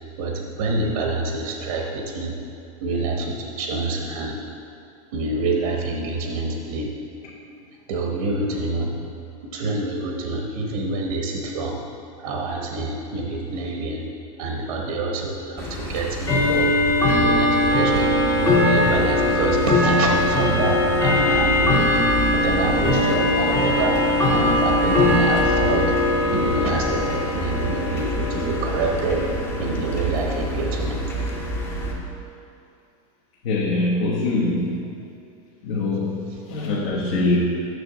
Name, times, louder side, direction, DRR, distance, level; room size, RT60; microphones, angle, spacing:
voice 1, 0.2-2.4 2.8-4.4 5.1-6.9 7.9-9.0 9.4-11.8 12.2-14.0 14.4-16.8 17.1-21.8 22.3-25.9 26.3-29.3 29.6-31.1, right 2 dB, 85° right, 1 dB, 1.0 m, -27 dB
Bell / Tick-tock, 15.6-31.9, left 1 dB, 15° left, 0.6 m, -21 dB
voice 2, 33.4-35.1 35.6-37.4, left 2 dB, 75° left, -6 dB, 1.3 m, -23 dB
6.8 x 6.2 x 4.0 m, 2.5 s
supercardioid pair, 170°, 19 cm